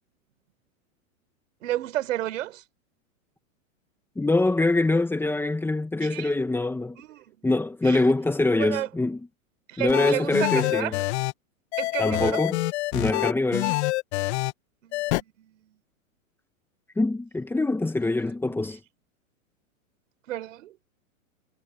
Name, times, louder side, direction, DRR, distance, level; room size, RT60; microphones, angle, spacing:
voice 1, 1.6-2.6 6.0-6.4 7.0-7.4 7.8-8.1 8.6-8.9 9.7-11.0 11.8-12.4 14.8-15.8 18.3-18.4 20.3-20.8, right 14 dB, 65° right, 5.8 m, -32 dB
voice 2, 4.2-7.0 7.4-9.2 9.8-11.0 12.0-12.6 12.9-13.8 17.0-18.8, left 2 dB, 5° left, 2.2 m, -24 dB
sound 1, 9.9-11.3 11.7-14.5 14.9-15.2, left 19 dB, 50° left, 2.5 m, -26 dB
hypercardioid pair, 140°, 42 cm